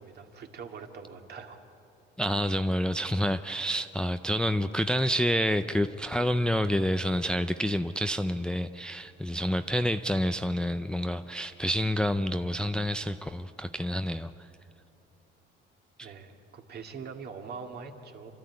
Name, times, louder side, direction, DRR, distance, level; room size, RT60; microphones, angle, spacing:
voice 1, 0.0-1.7 16.0-18.3, right 5 dB, 50° right, 3 dB, 2.1 m, -43 dB
voice 2, 2.2-14.5 16.0-16.1, equal, 5° left, 9 dB, 0.4 m, -28 dB
29.0 x 13.0 x 9.6 m, 2.8 s
cardioid pair, 135°, 21 cm